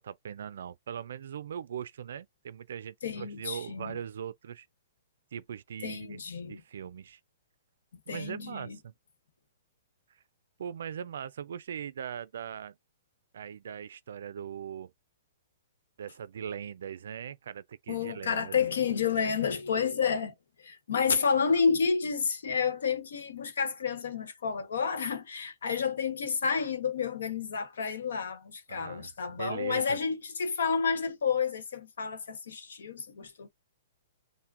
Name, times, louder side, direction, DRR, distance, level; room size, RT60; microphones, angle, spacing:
voice 1, 0.0-4.7 5.3-6.2 6.5-7.2 8.1-8.9 10.1-10.2 10.6-12.8 13.3-14.9 16.0-18.5 28.7-30.0, right 8 dB, 70° right, 0.3 m, -40 dB
voice 2, 3.0-4.0 5.8-6.6 8.1-8.8 17.9-20.3 20.6-33.5, left 6 dB, 80° left, 1.0 m, -30 dB
5.8 x 2.1 x 2.5 m
hypercardioid pair, 160°, 0 cm